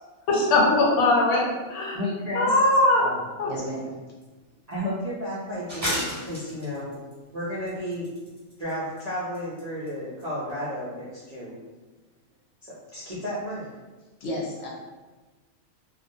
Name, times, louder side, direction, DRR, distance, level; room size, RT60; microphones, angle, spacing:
voice 1, 0.3-2.0 2.3-3.0 3.4-3.5, left 2 dB, 90° left, -2 dB, 1.1 m, -20 dB
voice 2, 1.9-2.5 4.7-7.0 7.3-8.1 8.6-11.6 12.6-13.7, equal, 65° right, -9 dB, 0.4 m, -32 dB
voice 3, 3.4-3.9 14.2-14.7, left 1 dB, 60° left, -3 dB, 0.7 m, -32 dB
sound 1, 4.2-4.3 4.7-4.8 5.7-7.1 7.7-8.7 9.0-9.1 9.3-9.6 9.9-10.0 10.2-10.3, equal, 15° right, 0.8 m, -32 dB
2.3 x 2.1 x 2.6 m, 1.3 s
omnidirectional pair, 1.5 m